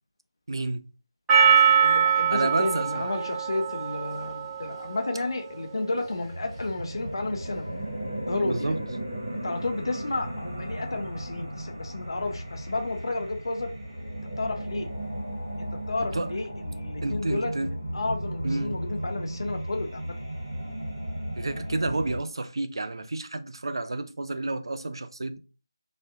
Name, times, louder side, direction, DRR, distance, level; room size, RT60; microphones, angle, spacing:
voice 1, 0.5-0.9 2.3-3.1 8.4-8.8 16.1-16.3 17.0-17.7 18.4-18.8 21.4-25.4, right 2 dB, 70° right, 0.3 m, -30 dB
Percussion, 1.3-5.6, right 7 dB, 5° right, 0.4 m, -23 dB
voice 2, 1.8-7.7 8.3-8.7 9.3-13.7 14.4-14.9 15.6-20.2, left 2 dB, 65° left, 0.4 m, -32 dB
sound 1, 5.9-22.2, right 1 dB, 40° right, 0.9 m, -35 dB
2.6 x 2.1 x 2.3 m
figure-of-eight pair, 170°, 3 cm